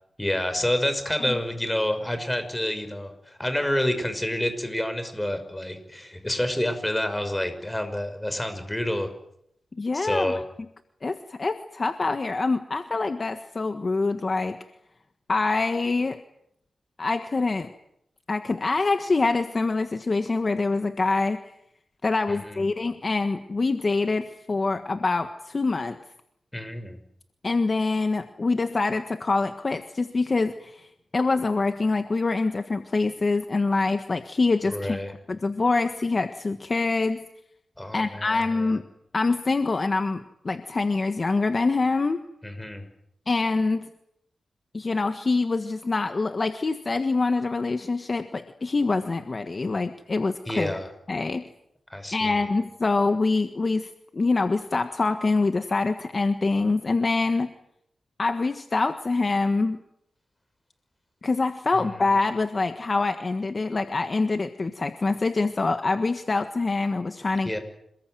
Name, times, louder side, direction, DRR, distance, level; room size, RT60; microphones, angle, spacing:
voice 1, 0.2-9.1 9.9-10.4 22.3-22.6 26.5-27.0 34.7-35.1 37.8-38.7 42.4-42.9 50.5-50.9 51.9-52.5 61.7-61.8 67.4-67.6, left 1 dB, 10° left, 8 dB, 5.7 m, -28 dB
voice 2, 9.8-10.4 11.0-14.6 15.3-16.2 17.0-17.7 18.3-21.4 22.0-26.0 27.4-30.9 31.1-35.0 35.3-37.2 37.9-38.8 39.1-42.2 43.3-43.9 44.7-50.8 51.1-51.4 52.1-57.5 58.2-59.8 61.2-67.5, left 3 dB, 35° left, 8 dB, 1.5 m, -25 dB
27.5 x 21.0 x 9.2 m, 0.75 s
wide cardioid pair, 110°, 0 cm